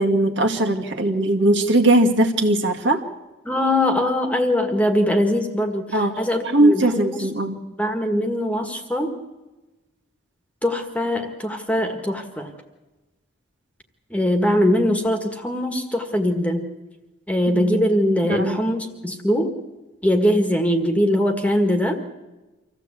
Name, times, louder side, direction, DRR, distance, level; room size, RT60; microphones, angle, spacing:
voice 1, 0.0-3.0 5.9-6.1 6.4-7.6 17.5-17.8 18.3-18.6, right 1 dB, 60° right, 3 dB, 2.0 m, -19 dB
voice 2, 3.5-7.5 7.8-9.1 10.6-12.5 14.1-16.6 17.3-19.5 20.0-22.0, left 1 dB, 5° left, 5 dB, 1.7 m, -22 dB
25.5 x 15.5 x 8.4 m, 1.1 s
head